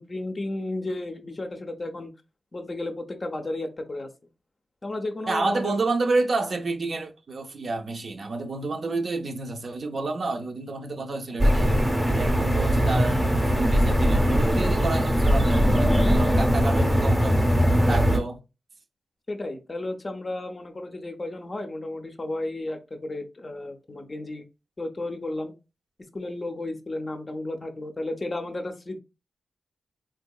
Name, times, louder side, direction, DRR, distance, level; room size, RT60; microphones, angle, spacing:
voice 1, 0.0-2.1 2.5-4.1 4.8-5.7 19.3-24.4 24.8-25.5 26.1-29.0, left 2 dB, 30° left, 0.5 m, -33 dB
voice 2, 5.3-11.7 12.1-17.5 17.8-18.4, right 3 dB, 55° right, 0.5 m, -29 dB
sound 1, 11.4-18.2, equal, 15° right, 0.7 m, -21 dB
3.7 x 2.7 x 2.2 m
wide cardioid pair, 110°, 0 cm